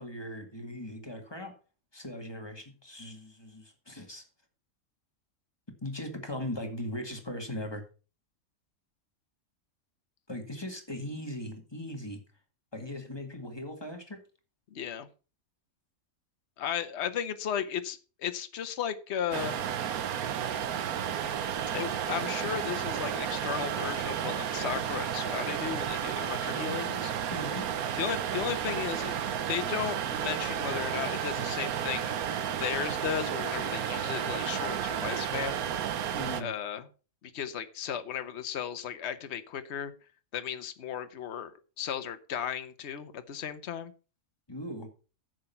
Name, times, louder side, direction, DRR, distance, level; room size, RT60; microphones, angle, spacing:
voice 1, 0.0-1.5 1.9-4.3 5.8-7.8 10.3-12.2 12.7-14.2 27.3-27.7 36.1-36.5 44.5-44.9, left 1 dB, 15° left, 2.0 m, -39 dB
voice 2, 14.7-15.1 16.6-19.6 21.7-27.1 28.0-29.2 29.5-32.2 32.6-35.6 36.4-36.9 37.3-39.9 40.3-43.9, left 8 dB, 55° left, 1.2 m, -35 dB
sound 1, 19.3-36.4, right 9 dB, 90° right, 1.3 m, -32 dB
10.0 x 7.9 x 5.7 m
omnidirectional pair, 1.5 m